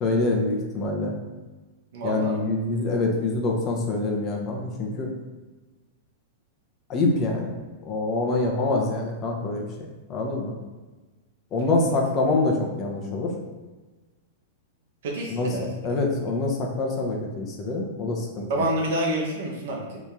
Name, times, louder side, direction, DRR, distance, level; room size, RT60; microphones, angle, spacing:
voice 1, 0.0-1.1 2.0-5.1 6.9-7.6 7.8-10.6 11.5-13.3 15.3-15.6 15.8-18.7, left 2 dB, 35° left, 0 dB, 0.7 m, -25 dB
voice 2, 1.9-2.4 11.6-11.9 15.0-15.9 18.5-20.0, right 1 dB, 65° right, -1 dB, 0.9 m, -28 dB
3.0 x 2.7 x 3.5 m, 1.2 s
hypercardioid pair, 120°, 0 cm